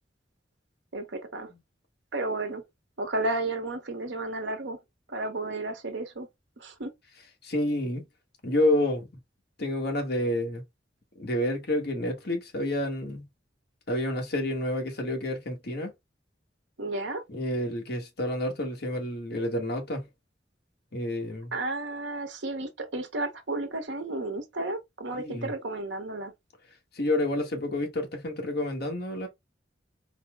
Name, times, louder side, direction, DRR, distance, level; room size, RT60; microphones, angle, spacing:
voice 1, 0.9-1.5 2.1-2.6 3.0-4.8 5.1-6.3 6.6-6.9 16.8-17.2 21.5-26.3, right 2 dB, 90° right, 1.0 m, -32 dB
voice 2, 7.4-8.1 8.4-9.1 9.6-10.6 11.2-13.3 13.9-15.9 17.3-20.1 20.9-21.5 25.1-25.5 26.9-29.3, left 1 dB, 60° left, 1.3 m, -29 dB
4.1 x 2.1 x 3.4 m
head